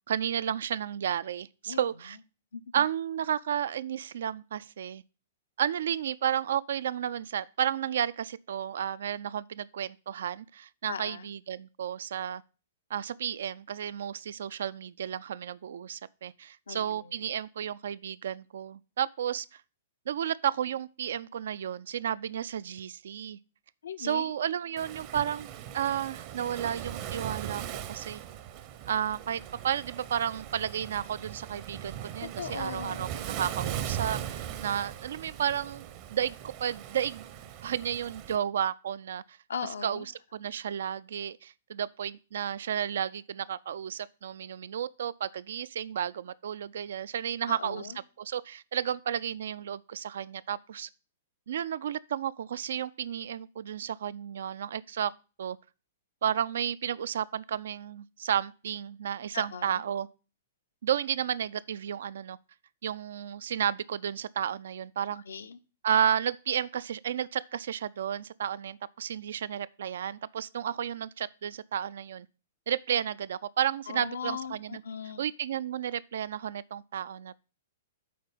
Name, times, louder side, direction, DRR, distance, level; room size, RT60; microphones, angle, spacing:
voice 1, 0.0-2.2 2.7-5.0 5.6-12.4 12.9-19.6 20.1-23.4 24.0-25.5 25.7-28.2 28.9-37.2 37.6-39.4 39.8-40.1 40.3-47.9 48.2-50.9 51.5-55.1 55.4-55.6 56.2-60.1 60.8-62.4 62.8-65.2 65.8-72.3 72.7-74.8 75.2-77.4, right 9 dB, 60° right, 0.4 m, -32 dB
voice 2, 2.5-2.8 10.9-11.3 16.7-17.3 23.8-24.3 32.4-33.1 39.5-40.1 47.5-48.0 59.3-59.8 65.3-65.6 73.9-75.2, left 6 dB, 65° left, 0.6 m, -38 dB
Waves surf, 24.8-38.4, right 10 dB, 40° right, 0.8 m, -39 dB
8.6 x 4.0 x 5.3 m
figure-of-eight pair, 110°, 0 cm